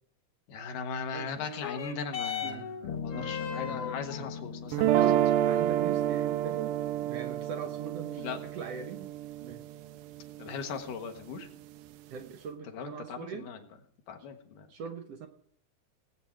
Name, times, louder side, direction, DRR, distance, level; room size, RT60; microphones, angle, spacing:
voice 1, 0.5-5.2 8.2-8.4 10.4-11.5 12.7-13.6 14.1-14.7, left 5 dB, 85° left, 5 dB, 3.1 m, -38 dB
sound 1, 1.3-10.3 11.1-11.2, left 7 dB, 55° left, 2.0 m, -42 dB
sound 2, 2.5-2.6 2.8-6.2, left 6 dB, 70° left, 1.5 m, -41 dB
sound 3, 4.7-10.8, right 12 dB, 85° right, 2.2 m, -29 dB
voice 2, 4.8-6.8 7.0-9.1 9.4-9.6 12.1-13.5 14.7-15.3, right 6 dB, 65° right, 6 dB, 1.7 m, -41 dB
18.5 x 8.8 x 4.6 m, 0.70 s
omnidirectional pair, 3.7 m